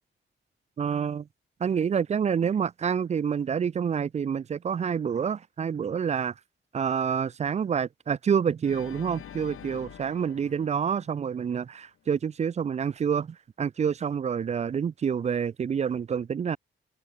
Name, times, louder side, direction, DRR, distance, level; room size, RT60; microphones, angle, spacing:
voice 1, 0.8-1.3 1.6-6.3 6.7-16.6, right 7 dB, 35° right, 0.4 m, -28 dB
Organ, 8.6-11.7, left 9 dB, 90° left, 3.8 m, -46 dB
wide cardioid pair, 165°, 21 cm